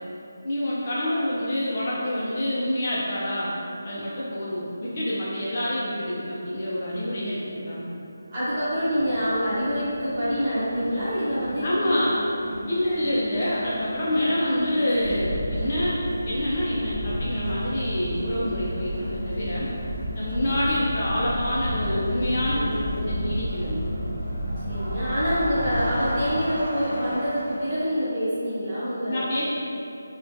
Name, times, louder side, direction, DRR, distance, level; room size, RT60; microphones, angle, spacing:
voice 1, 0.4-3.5 3.8-7.9 11.6-12.1 12.7-16.0 16.3-19.7 20.1-23.9 29.1-29.4, left 1 dB, 30° left, -8 dB, 0.4 m, -27 dB
voice 2, 8.3-12.0 24.6-29.2, equal, 25° right, -14 dB, 1.2 m, -26 dB
Crowd, 8.4-27.9, equal, 75° right, 0.7 m, -37 dB
Wind, 15.0-26.3, equal, 45° right, 0.4 m, -32 dB
3.8 x 2.1 x 2.5 m, 2.8 s
figure-of-eight pair, 175°, 0 cm